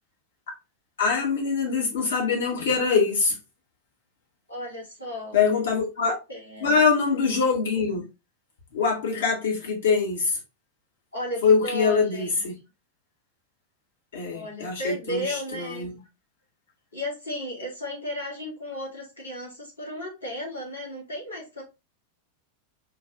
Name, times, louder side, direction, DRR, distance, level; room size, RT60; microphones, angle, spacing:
voice 1, 1.0-3.4 5.3-6.2 6.6-8.1 8.7-10.4 11.4-12.6 14.1-15.9, left 5 dB, 60° left, 1.2 m, -23 dB
voice 2, 4.5-5.4 6.3-6.8 11.1-12.4 14.3-15.9 16.9-21.6, left 1 dB, 80° left, 1.9 m, -34 dB
5.2 x 2.4 x 3.6 m
figure-of-eight pair, 90°, 0 cm